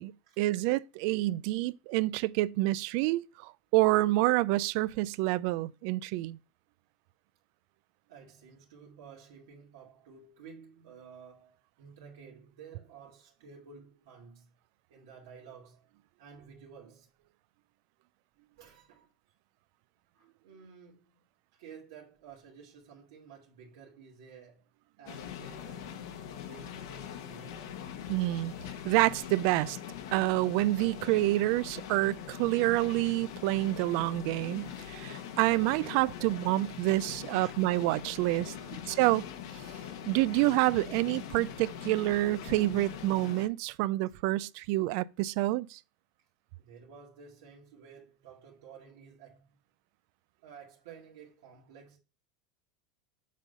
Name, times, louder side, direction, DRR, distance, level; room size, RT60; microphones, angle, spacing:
voice 1, 0.0-6.4 28.1-28.5 28.8-29.8 30.1-38.5 39.0-39.2 40.1-45.8, right 18 dB, 60° right, 0.4 m, -28 dB
voice 2, 8.1-14.5 14.9-15.9 16.2-17.1 18.6-19.1 20.1-21.2 21.5-24.7 25.0-27.6 37.0-37.5 38.3-38.9 46.2-46.3 46.6-49.6 50.4-52.0, right 6 dB, 80° right, 2.0 m, -52 dB
sound 1, 25.1-43.5, left 9 dB, 80° left, 1.3 m, -42 dB
7.3 x 4.0 x 5.4 m
supercardioid pair, 140°, 2 cm